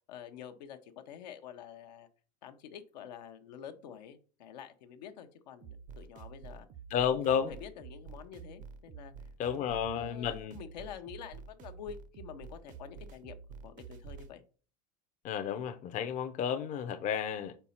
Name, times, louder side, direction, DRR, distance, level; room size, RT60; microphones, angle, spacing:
voice 1, 0.1-2.1 2.4-6.7 7.3-9.1 9.5-13.4 13.6-14.4, left 8 dB, 80° left, 0.9 m, -48 dB
sound 1, 5.6-14.3, right 5 dB, 40° right, 0.6 m, -49 dB
voice 2, 6.9-7.5 9.4-10.6 15.2-17.6, left 8 dB, 35° left, 0.6 m, -32 dB
4.5 x 4.2 x 5.6 m
supercardioid pair, 120°, 21 cm